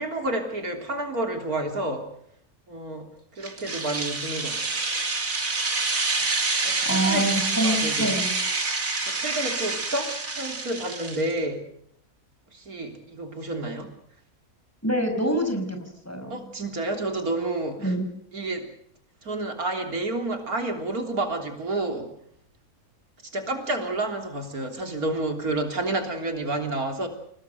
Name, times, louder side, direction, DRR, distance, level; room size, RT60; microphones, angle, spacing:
voice 1, 0.0-2.1 2.7-3.1 3.4-4.6 6.2-6.3 6.6-7.2 7.6-8.2 9.1-11.7 12.5-13.9 16.3-17.9 18.3-18.7 19.2-22.1 23.2-27.1, right 2 dB, 85° right, 4 dB, 3.9 m, -30 dB
sound 1, 3.4-11.3, right 3 dB, 65° right, 3.2 m, -27 dB
voice 2, 6.8-8.3 14.8-16.4 17.8-18.1, right 1 dB, 10° left, 5 dB, 5.2 m, -26 dB
29.5 x 18.5 x 6.8 m, 0.71 s
omnidirectional pair, 1.5 m